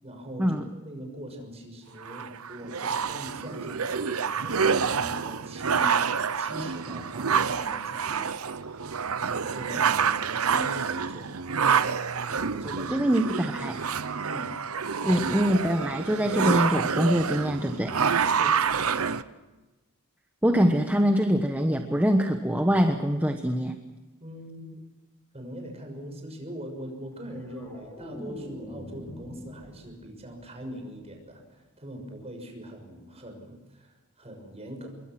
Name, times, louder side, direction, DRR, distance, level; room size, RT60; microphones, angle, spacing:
voice 1, 0.0-6.0 6.3-8.3 9.2-11.3 12.2-13.1 14.2-14.6 16.7-16.9 18.3-18.9 24.2-24.8 25.3-34.9, equal, 30° right, 3 dB, 6.4 m, -41 dB
sound 1, 2.0-19.2, right 6 dB, 80° right, 0.9 m, -27 dB
voice 2, 12.9-13.8 15.0-17.9 20.4-23.7, equal, 10° right, 5 dB, 1.2 m, -24 dB
sound 2, 27.1-30.3 30.7-31.0, equal, 10° left, 5.9 m, -43 dB
27.0 x 22.5 x 6.1 m, 1.1 s
head